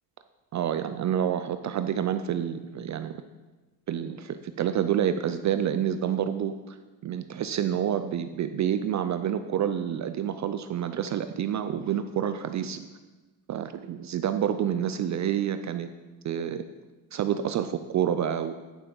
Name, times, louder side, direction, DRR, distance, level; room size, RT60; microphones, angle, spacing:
voice 1, 0.5-3.2 3.9-6.8 7.0-12.9 13.5-15.9 16.2-16.6 17.1-18.5, right 9 dB, 45° right, 10 dB, 0.4 m, -28 dB
9.3 x 5.8 x 3.9 m, 1.2 s
cardioid pair, 90°, 43 cm